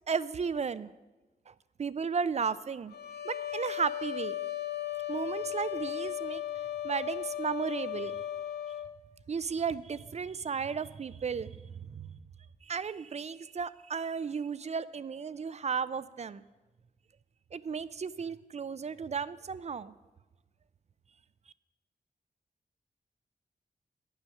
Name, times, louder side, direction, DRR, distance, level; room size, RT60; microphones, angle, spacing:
voice 1, 0.1-0.9 1.5-1.6 1.8-2.9 3.2-4.4 5.1-6.4 6.8-8.2 9.3-12.1 12.6-16.4 17.5-19.9, right 6 dB, 45° right, 17 dB, 0.4 m, -34 dB
sound 1, 2.9-8.9, left 12 dB, 90° left, 0.5 m, -36 dB
9.6 x 6.3 x 6.5 m, 1.2 s
cardioid pair, 60°, 16 cm